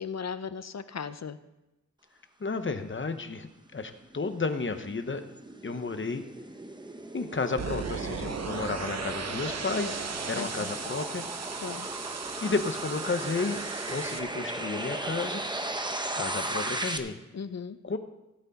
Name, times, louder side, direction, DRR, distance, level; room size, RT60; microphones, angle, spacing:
voice 1, 0.0-1.4 10.4-10.7 11.6-11.9 17.3-17.8, left 6 dB, 55° left, 12 dB, 0.6 m, -37 dB
voice 2, 2.4-5.2 5.6-6.2 7.1-10.0 10.3-11.3 12.4-13.6 13.9-15.4 16.1-17.2 17.8-18.0, left 4 dB, 40° left, 8 dB, 1.0 m, -32 dB
sound 1, 3.8-17.0, right 1 dB, 15° right, 0.8 m, -37 dB
sound 2, 7.6-14.2, right 5 dB, 55° right, 0.9 m, -36 dB
16.5 x 8.1 x 4.1 m, 0.99 s
wide cardioid pair, 120°, 31 cm